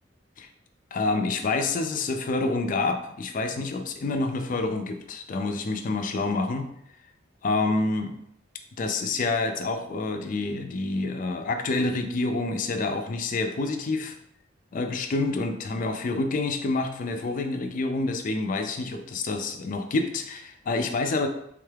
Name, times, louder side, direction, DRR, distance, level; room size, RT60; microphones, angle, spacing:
voice 1, 0.9-6.7 7.4-8.1 8.8-14.2 14.7-21.3, left 3 dB, 40° left, 6 dB, 0.4 m, -27 dB
3.6 x 2.3 x 3.3 m, 0.72 s
head